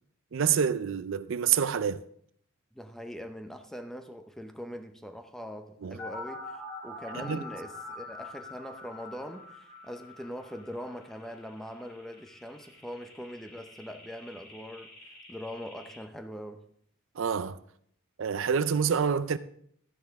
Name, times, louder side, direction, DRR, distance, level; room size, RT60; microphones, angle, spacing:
voice 1, 0.3-2.0 5.8-6.0 7.2-7.4 17.2-17.6 18.2-19.4, right 7 dB, 60° right, 0.4 m, -27 dB
voice 2, 2.7-16.6, equal, ahead, 0.6 m, -42 dB
sound 1, 6.0-16.0, left 2 dB, 65° left, 4.1 m, -45 dB
12.5 x 10.0 x 3.6 m
head